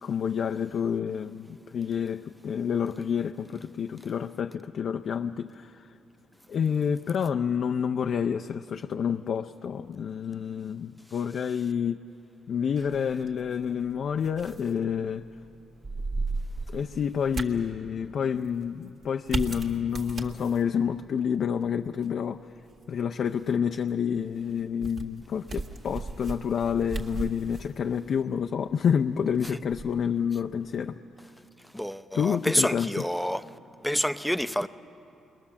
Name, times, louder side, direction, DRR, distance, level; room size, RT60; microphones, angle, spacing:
voice 1, 0.0-5.9 6.5-12.0 12.5-15.2 16.7-22.4 22.9-31.0 32.1-33.0, left 7 dB, 60° left, 0.5 m, -28 dB
sound 1, 12.8-30.8, right 3 dB, 45° right, 1.8 m, -39 dB
voice 2, 31.7-33.4 33.8-34.7, equal, ahead, 0.6 m, -28 dB
28.5 x 21.5 x 7.2 m
cardioid pair, 90°, 0 cm